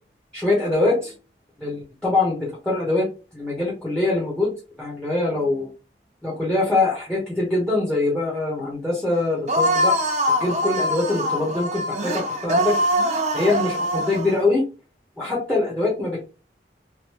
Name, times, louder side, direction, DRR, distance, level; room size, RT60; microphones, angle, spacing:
voice 1, 0.3-1.1 1.6-3.1 3.3-4.5 4.8-5.7 6.2-9.9 10.3-12.8 13.3-14.6 15.2-16.2, left 2 dB, 5° left, -4 dB, 0.9 m, -23 dB
sound 1, 9.5-14.4, equal, 40° right, 0.6 m, -23 dB
3.1 x 2.5 x 3.0 m, 0.32 s
head